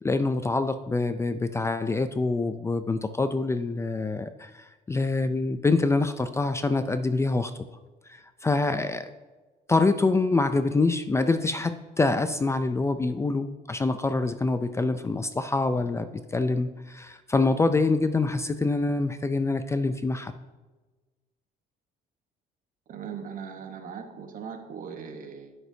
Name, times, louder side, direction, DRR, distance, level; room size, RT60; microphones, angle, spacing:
voice 1, 0.0-7.5 8.1-9.1 9.7-20.3, left 3 dB, 15° left, 10 dB, 0.4 m, -25 dB
voice 2, 22.9-25.5, right 6 dB, 55° right, 6 dB, 1.0 m, -39 dB
11.0 x 6.1 x 2.7 m, 1.2 s
cardioid pair, 110°, 17 cm